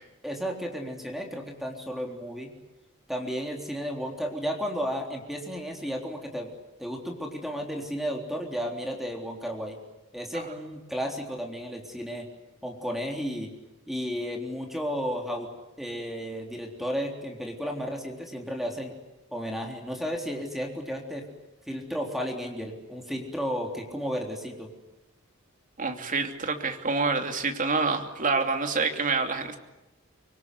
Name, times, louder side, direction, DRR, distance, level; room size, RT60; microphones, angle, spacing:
voice 1, 0.2-2.5 3.1-6.5 6.8-9.8 10.1-12.3 12.6-13.5 13.9-15.5 15.8-19.0 19.3-21.3 21.7-24.7, equal, ahead, 2 dB, 3.7 m, -33 dB
voice 2, 25.8-29.6, right 4 dB, 40° right, 5 dB, 2.8 m, -27 dB
25.0 x 24.5 x 9.6 m, 1.0 s
head